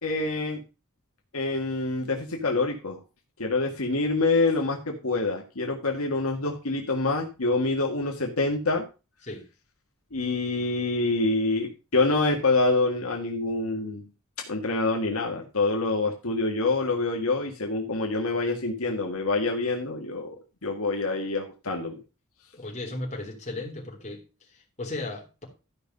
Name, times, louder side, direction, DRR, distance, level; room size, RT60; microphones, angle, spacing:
voice 1, 0.0-0.6 1.3-3.0 3.4-8.8 10.1-14.0 14.4-20.3 20.6-22.0, left 3 dB, 70° left, 1 dB, 1.8 m, -26 dB
voice 2, 22.5-24.2 24.5-25.4, left 2 dB, 30° left, 1 dB, 3.4 m, -36 dB
13.5 x 5.5 x 5.4 m, 0.31 s
head